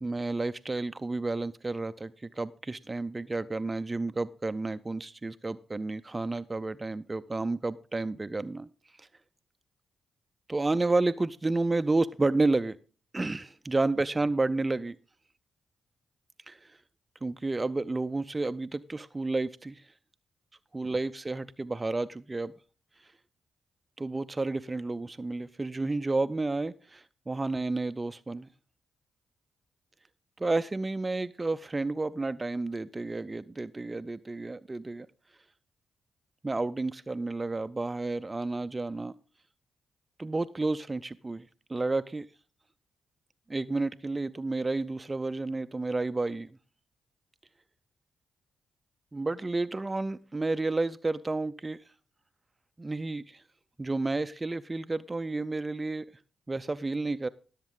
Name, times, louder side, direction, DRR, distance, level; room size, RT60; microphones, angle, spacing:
voice 1, 0.0-8.7 9.0-9.1 10.5-12.8 13.1-15.0 16.5-16.8 17.2-19.9 20.7-22.5 23.0-23.1 24.0-28.5 30.4-35.1 36.4-39.1 40.2-42.3 43.5-46.6 49.1-51.8 52.8-53.4 53.8-56.1 56.5-57.3, right 2 dB, 25° right, 12 dB, 0.4 m, -31 dB
16.5 x 7.3 x 3.7 m, 0.37 s
supercardioid pair, 55°, 0 cm